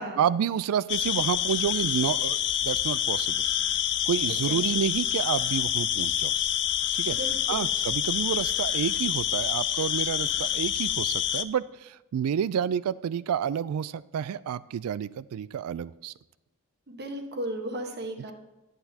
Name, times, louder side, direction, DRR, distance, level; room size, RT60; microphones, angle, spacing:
voice 1, 0.0-3.4 4.1-6.3 7.0-7.2 7.5-16.1, right 8 dB, 75° right, 19 dB, 0.3 m, -29 dB
sound 1, 0.9-11.4, left 10 dB, 55° left, 0.4 m, -27 dB
voice 2, 7.0-7.7 16.9-18.3, right 1 dB, 45° right, 4 dB, 1.1 m, -35 dB
10.5 x 7.9 x 2.8 m, 1.0 s
head